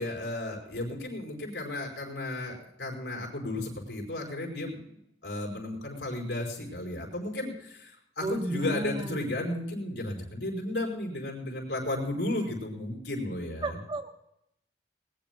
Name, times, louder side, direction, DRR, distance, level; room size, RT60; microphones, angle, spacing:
voice 1, 0.0-13.8, left 1 dB, 70° left, 0 dB, 5.1 m, -34 dB
voice 2, 8.2-9.2 13.6-14.2, right 2 dB, 30° right, 6 dB, 1.1 m, -34 dB
20.5 x 19.5 x 2.3 m, 0.77 s
head